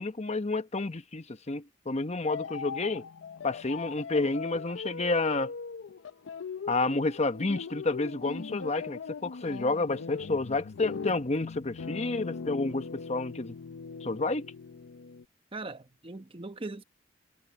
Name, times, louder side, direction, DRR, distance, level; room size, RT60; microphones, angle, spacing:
voice 1, 0.0-3.1 3.4-5.5 6.7-13.6 14.0-14.5, left 3 dB, 35° left, 1.0 m, -30 dB
sound 1, 2.3-15.2, left 5 dB, 85° left, 0.5 m, -40 dB
voice 2, 15.5-16.8, right 2 dB, 30° right, 1.0 m, -40 dB
head